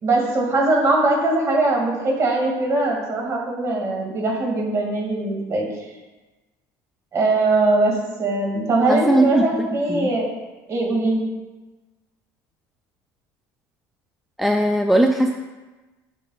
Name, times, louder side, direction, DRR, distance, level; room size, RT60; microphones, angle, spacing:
voice 1, 0.0-5.7 7.1-10.3 10.7-11.2, right 2 dB, 40° right, 0 dB, 2.0 m, -21 dB
voice 2, 8.9-10.1 14.4-15.3, right 1 dB, ahead, 3 dB, 0.4 m, -19 dB
10.5 x 6.2 x 2.3 m, 1.2 s
supercardioid pair, 120°, 8 cm